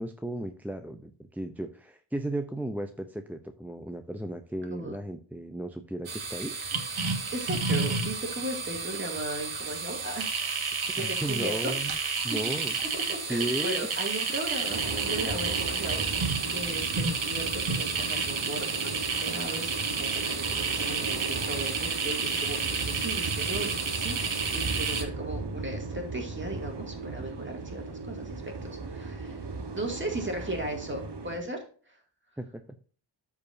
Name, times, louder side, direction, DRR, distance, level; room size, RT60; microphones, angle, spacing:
voice 1, 0.0-6.6 10.9-12.0 12.2-12.7 13.2-13.9 32.4-32.8, right 1 dB, 5° right, 6 dB, 0.5 m, -35 dB
sound 1, 6.1-25.0, right 4 dB, 80° right, 1.7 m, -31 dB
voice 2, 7.3-10.6 10.9-12.4 12.9-29.5 29.7-31.6, right 1 dB, 25° right, 2 dB, 2.4 m, -37 dB
sound 2, 14.7-31.4, right 3 dB, 60° right, 1.3 m, -37 dB
13.5 x 4.8 x 2.7 m, 0.42 s
wide cardioid pair, 130°, 47 cm